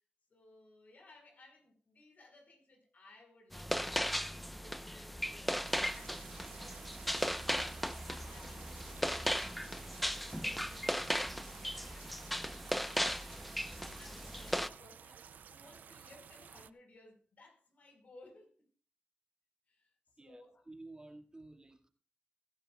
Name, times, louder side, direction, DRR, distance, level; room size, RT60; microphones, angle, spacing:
voice 1, 0.3-4.1 4.5-12.2 13.0-15.2 15.5-18.7 19.7-20.7, left 2 dB, 70° left, 5.0 m, -61 dB
sound 1, 3.5-14.7, equal, ahead, 0.9 m, -37 dB
sound 2, 5.6-16.7, right 7 dB, 85° right, 0.5 m, -54 dB
voice 2, 20.7-21.9, right 2 dB, 30° right, 2.1 m, -52 dB
21.5 x 11.5 x 2.4 m
cardioid pair, 60°, 3 cm